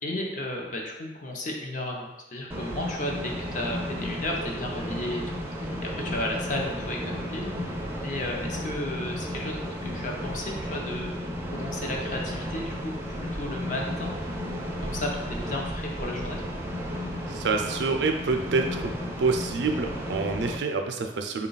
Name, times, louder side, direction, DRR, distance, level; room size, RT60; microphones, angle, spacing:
voice 1, 0.0-11.2 11.5-14.1 14.8-16.4, left 1 dB, 45° left, 0 dB, 0.6 m, -34 dB
sound 1, 2.5-20.6, equal, 15° right, 0.4 m, -33 dB
voice 2, 17.3-18.9 19.2-21.5, right 4 dB, 85° right, 5 dB, 0.4 m, -27 dB
3.8 x 2.3 x 3.9 m, 1.1 s
head